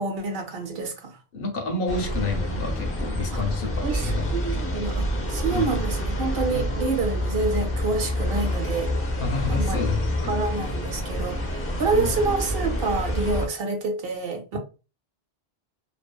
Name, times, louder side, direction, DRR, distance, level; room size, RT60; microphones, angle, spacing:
voice 1, 0.0-1.2 3.3-3.4 3.8-5.0 5.3-8.9 9.5-9.8 10.2-14.6, right 3 dB, 65° right, 0.8 m, -28 dB
voice 2, 1.3-4.6 5.5-5.8 6.5-6.8 9.2-10.4 11.9-12.1, left 3 dB, 65° left, 0.8 m, -29 dB
sound 1, 1.9-13.5, equal, 15° left, 0.5 m, -27 dB
2.6 x 2.5 x 2.2 m
omnidirectional pair, 1.1 m